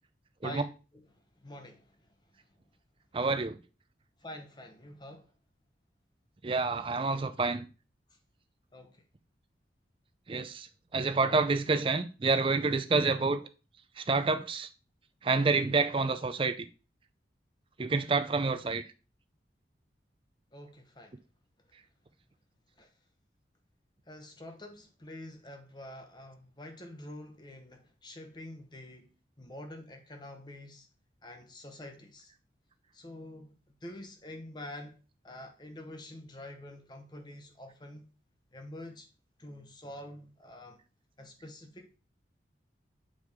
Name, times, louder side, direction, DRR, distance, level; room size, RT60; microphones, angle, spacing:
voice 1, 1.4-2.1 4.2-5.3 8.7-9.0 20.5-21.2 22.8-22.9 24.1-29.1 29.4-30.9 31.2-32.3 32.9-38.1 38.5-39.1 39.4-40.8 41.2-42.0, left 1 dB, 25° left, 1.0 m, -47 dB
voice 2, 3.1-3.6 6.4-7.6 10.3-10.7 10.9-13.4 14.0-14.7 15.2-16.7 17.8-18.8, right 4 dB, 30° right, 0.5 m, -28 dB
6.4 x 4.8 x 3.6 m
head